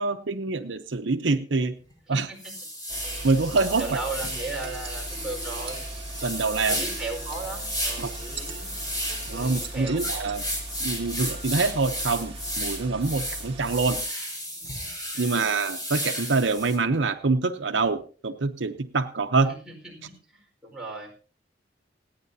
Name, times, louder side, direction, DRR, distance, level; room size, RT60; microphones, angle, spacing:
voice 1, 0.0-1.8 2.1-2.3 3.2-4.0 6.2-6.8 8.0-8.1 9.3-10.4 10.8-14.0 15.2-19.5, right 3 dB, 75° right, 8 dB, 0.8 m, -25 dB
sound 1, 1.8-1.9 2.4-16.8, equal, 20° left, 5.0 m, -33 dB
voice 2, 2.1-2.5 3.8-5.9 6.7-8.7 9.2-10.4 15.1-15.5 19.5-21.1, right 3 dB, 5° right, -3 dB, 4.6 m, -37 dB
sound 2, 2.9-14.0, right 2 dB, 30° right, 2.2 m, -39 dB
28.0 x 9.4 x 2.8 m, 0.39 s
head